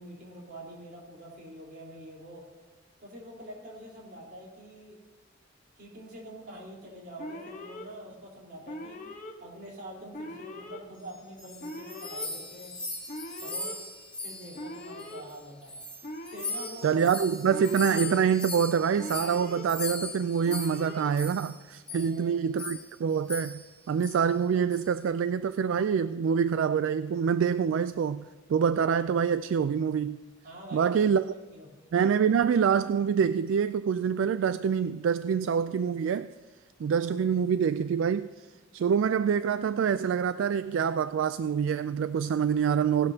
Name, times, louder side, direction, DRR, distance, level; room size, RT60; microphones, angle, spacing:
voice 1, 0.0-2.5 3.0-5.0 5.8-12.7 13.4-13.7 14.2-15.8 16.3-17.0 21.9-22.4 30.4-31.2 31.5-31.7, right 1 dB, 55° right, 3.8 m, -45 dB
Alarm, 7.2-7.8 8.7-9.3 10.1-10.8 11.6-12.3 13.1-13.7 14.5-15.2 16.0-16.7 17.5-18.2 19.0-19.6 20.4-21.1, left 1 dB, 40° left, 1.2 m, -41 dB
sound 1, 11.1-15.4 15.6-21.6 21.9-22.1 22.6-22.9 23.3-23.7 24.0-24.2 24.7-25.0, left 2 dB, 5° left, 1.9 m, -39 dB
voice 2, 16.8-28.2 28.5-30.2 30.7-31.2 31.9-36.3 36.8-38.3 38.7-43.1, right 7 dB, 75° right, 0.3 m, -26 dB
17.5 x 11.5 x 2.8 m
head